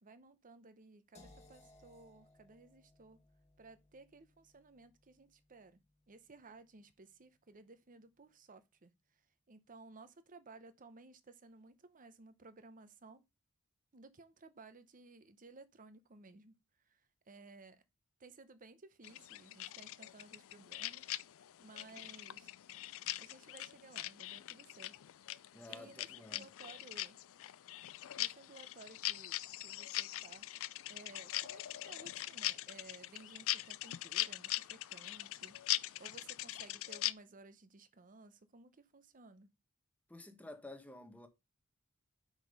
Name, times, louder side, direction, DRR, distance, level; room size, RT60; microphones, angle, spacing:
voice 1, 0.0-3.2 3.6-5.8 6.1-13.2 13.9-17.8 18.2-22.5 23.2-25.0 25.7-27.2 28.2-30.5 30.9-35.6 36.0-39.5, right 3 dB, 40° right, 0.8 m, -58 dB
sound 1, 1.1-7.1, left 2 dB, 30° left, 2.1 m, -65 dB
sound 2, 19.0-37.1, left 15 dB, 65° left, 0.4 m, -42 dB
voice 2, 25.5-26.5 40.1-41.3, left 2 dB, 5° left, 1.1 m, -51 dB
6.0 x 4.9 x 5.3 m
head